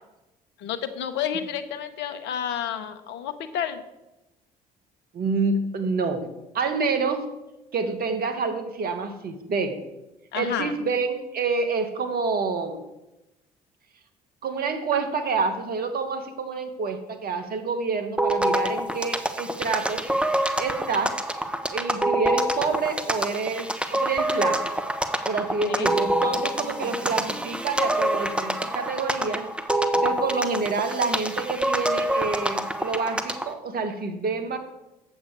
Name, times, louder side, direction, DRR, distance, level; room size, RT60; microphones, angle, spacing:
voice 1, 0.6-3.8 10.3-10.7 25.6-25.9, left 9 dB, 60° left, 10 dB, 0.8 m, -30 dB
voice 2, 5.1-6.3 6.5-7.3 7.7-9.8 10.3-12.8 14.4-20.1 20.6-21.2 21.7-24.7 25.3-29.5 29.8-34.6, right 4 dB, 50° right, 7 dB, 1.2 m, -28 dB
sound 1, 18.2-33.5, right 1 dB, 5° right, 0.9 m, -26 dB
7.9 x 7.6 x 4.7 m, 0.98 s
hypercardioid pair, 50°, 21 cm